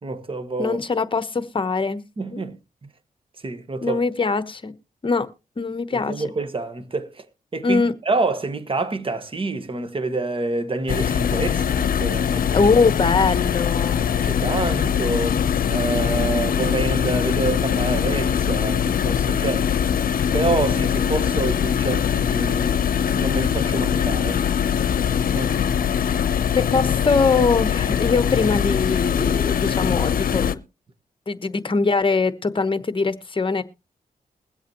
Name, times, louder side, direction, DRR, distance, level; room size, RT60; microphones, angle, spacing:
voice 1, 0.0-0.8 2.2-2.6 3.4-4.0 5.9-7.3 7.5-12.6 14.1-15.4 15.7-19.7 20.3-22.8 23.2-24.4 25.3-25.5, right 3 dB, 35° right, 1.4 m, -27 dB
voice 2, 0.6-2.0 2.3-2.4 3.8-4.7 5.0-5.3 5.6-6.2 7.6-7.9 12.5-14.0 26.5-30.6 31.3-33.6, left 4 dB, 35° left, 1.1 m, -22 dB
sound 1, 10.9-30.5, left 8 dB, 70° left, 0.7 m, -22 dB
21.5 x 8.1 x 3.0 m
cardioid pair, 85°, 15 cm